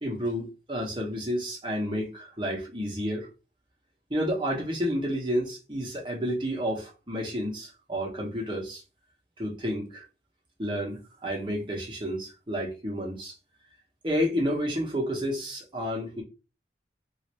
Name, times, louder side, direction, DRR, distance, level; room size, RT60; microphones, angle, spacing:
voice 1, 0.0-3.3 4.1-8.8 9.4-10.0 10.6-13.3 14.0-16.2, equal, 25° right, 1.1 m, -30 dB
3.1 x 2.8 x 2.9 m
head